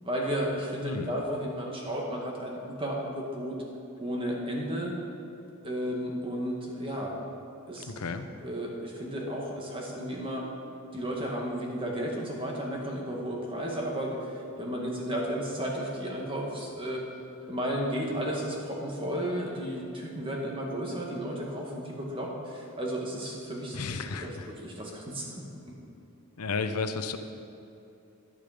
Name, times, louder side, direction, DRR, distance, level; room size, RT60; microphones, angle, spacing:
voice 1, 0.0-3.6 4.0-4.9 5.6-7.1 7.6-10.4 10.9-17.0 17.5-25.4, equal, 25° right, -2 dB, 1.9 m, -33 dB
voice 2, 7.9-8.3 23.7-24.5 26.4-27.2, left 4 dB, 85° left, 8 dB, 0.7 m, -33 dB
11.5 x 10.5 x 5.1 m, 2.8 s
head